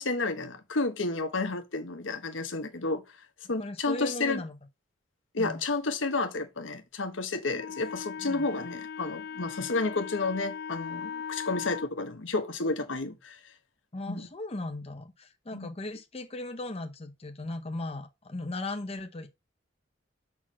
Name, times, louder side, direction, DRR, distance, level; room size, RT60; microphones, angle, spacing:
voice 1, 0.0-3.0 3.5-4.4 5.3-13.5 14.1-14.3 15.5-15.7, left 3 dB, 80° left, 1.2 m, -31 dB
voice 2, 3.6-4.5 5.4-5.6 8.2-8.5 9.6-9.7 13.9-19.3, left 2 dB, 30° left, 0.8 m, -37 dB
Wind instrument woodwind instrument, 7.6-11.9, left 7 dB, 55° left, 0.3 m, -39 dB
5.9 x 4.3 x 6.1 m
head